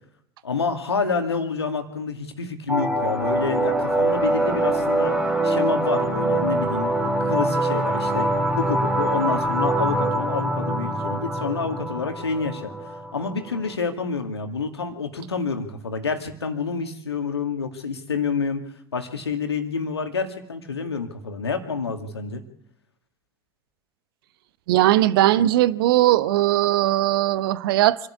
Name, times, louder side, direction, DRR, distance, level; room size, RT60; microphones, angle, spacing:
voice 1, 0.4-5.2 5.4-18.6 18.9-22.4, left 5 dB, 80° left, 2.3 m, -28 dB
sound 1, 2.7-13.7, right 1 dB, 5° right, 4.0 m, -24 dB
voice 2, 24.7-28.0, right 14 dB, 60° right, 1.0 m, -19 dB
26.5 x 11.5 x 8.4 m
figure-of-eight pair, 80°, 13 cm